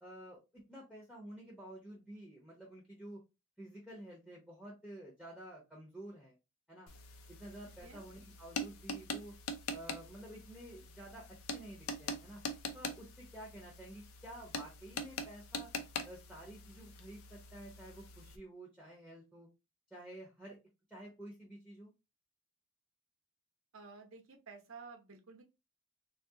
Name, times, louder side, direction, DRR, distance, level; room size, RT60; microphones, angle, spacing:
voice 1, 0.0-3.2 3.6-6.4 6.7-6.9 7.3-9.3 9.7-12.4 12.7-15.7 16.0-19.5 19.9-20.6 20.9-21.9, right 1 dB, ahead, -4 dB, 0.7 m, -51 dB
sound 1, 6.9-18.4, left 2 dB, 85° left, 0.5 m, -44 dB
voice 2, 23.7-25.4, right 4 dB, 75° right, 3 dB, 0.8 m, -52 dB
3.4 x 2.4 x 2.7 m, 0.26 s
head